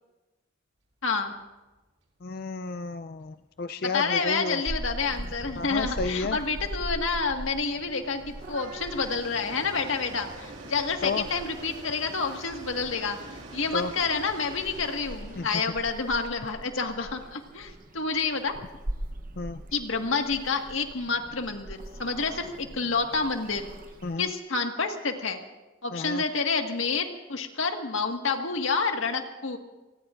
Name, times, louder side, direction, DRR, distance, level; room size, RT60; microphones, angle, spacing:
voice 1, 1.0-1.3 3.8-13.2 13.5-18.6 19.7-23.7 24.2-25.4 25.8-29.6, left 4 dB, 85° left, 4 dB, 1.7 m, -29 dB
Train, 1.3-1.4 1.7-1.8 2.1-19.5, right 2 dB, 80° right, 2.1 m, -47 dB
voice 2, 2.2-4.6 5.6-6.4 11.0-11.3 13.7-13.9 15.4-15.5 19.4-19.6 24.0-24.3 25.9-26.2, left 3 dB, 50° left, 9 dB, 0.4 m, -32 dB
Purr / Meow, 4.7-24.2, right 1 dB, 45° right, 0.9 m, -41 dB
28.5 x 20.0 x 2.5 m, 1.1 s
head